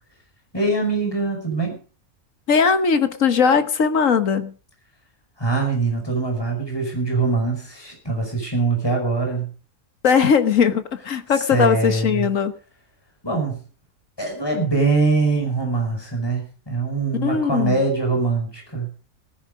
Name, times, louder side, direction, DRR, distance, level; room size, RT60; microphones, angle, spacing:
voice 1, 0.5-1.8 5.4-9.5 11.3-12.3 13.2-13.6 14.2-18.9, right 3 dB, 15° left, 2 dB, 5.1 m, -23 dB
voice 2, 2.5-4.5 10.0-12.5 17.2-17.7, left 6 dB, 60° left, 10 dB, 1.6 m, -19 dB
18.5 x 10.5 x 5.1 m, 0.38 s
omnidirectional pair, 1.5 m